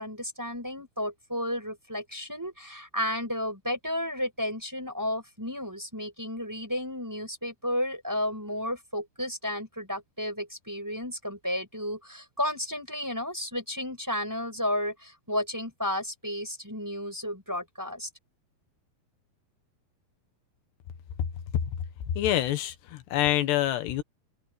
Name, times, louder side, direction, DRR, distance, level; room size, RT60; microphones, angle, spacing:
voice 1, 0.0-18.1, left 1 dB, 5° right, 5.1 m, -32 dB
voice 2, 22.2-24.0, left 13 dB, 90° left, 3.6 m, -26 dB
open air
omnidirectional pair, 4.7 m